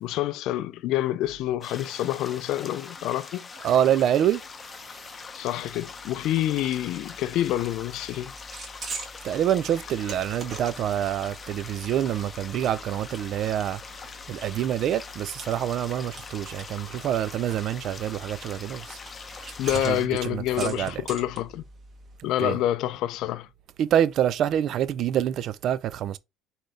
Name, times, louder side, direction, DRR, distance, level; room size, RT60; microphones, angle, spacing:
voice 1, 0.0-3.5 5.3-8.3 19.6-21.6 22.2-23.5, left 13 dB, 65° left, 0.4 m, -27 dB
sound 1, 1.6-20.1, left 4 dB, 25° left, 0.7 m, -43 dB
voice 2, 3.6-4.4 9.2-13.8 14.3-19.0 19.8-20.0 20.3-20.9 22.4-22.6 23.8-26.2, right 10 dB, 50° right, 0.4 m, -26 dB
sound 2, 5.6-22.2, right 2 dB, 35° right, 1.5 m, -44 dB
4.1 x 3.9 x 3.2 m
cardioid pair, 135°, 0 cm